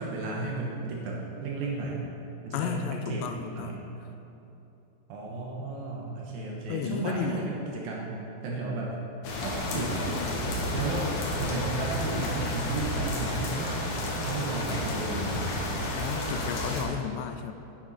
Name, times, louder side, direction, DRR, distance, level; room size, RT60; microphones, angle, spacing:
voice 1, 0.0-2.0 2.4-3.9 5.1-8.2 8.4-8.9 9.4-10.1 10.7-11.1 11.4-13.8 14.2-15.4, right 2 dB, 70° right, -2 dB, 2.6 m, -33 dB
voice 2, 2.5-3.8 6.0-6.1 6.4-7.5 16.0-17.5, left 7 dB, 85° left, 7 dB, 2.7 m, -33 dB
sound 1, 9.2-16.8, left 1 dB, 65° left, 2.6 m, -31 dB
10.5 x 9.0 x 4.2 m, 3.0 s
omnidirectional pair, 4.9 m